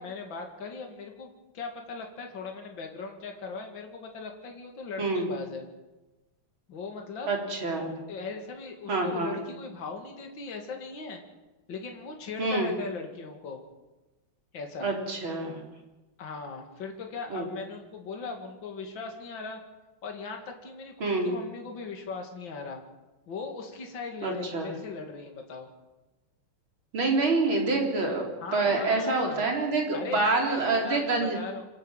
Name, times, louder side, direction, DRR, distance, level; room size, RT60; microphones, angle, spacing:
voice 1, 0.0-5.7 6.7-7.3 8.1-11.2 11.7-13.6 14.5-14.9 16.2-19.6 20.0-22.8 23.3-25.7 28.4-29.5 29.9-31.6, left 4 dB, 60° left, 3 dB, 3.0 m, -39 dB
voice 2, 7.3-8.0 8.9-9.3 12.4-12.7 14.8-15.6 17.3-17.4 21.0-21.3 24.2-24.7 26.9-28.2 28.5-31.4, right 3 dB, 65° right, 1 dB, 4.6 m, -27 dB
27.0 x 11.0 x 9.0 m, 1.1 s
omnidirectional pair, 2.4 m